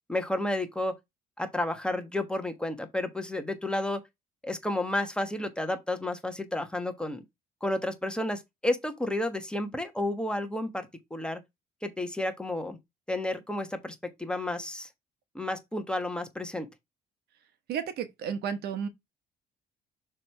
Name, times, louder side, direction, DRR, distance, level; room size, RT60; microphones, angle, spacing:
voice 1, 0.1-1.0 1.4-4.0 4.4-7.2 7.6-11.4 11.8-12.8 13.1-14.9 15.3-16.7, left 1 dB, 5° left, 1.3 m, -31 dB
voice 2, 17.7-18.9, right 7 dB, 70° right, 1.1 m, -32 dB
6.7 x 3.3 x 4.5 m
cardioid pair, 110°, 17 cm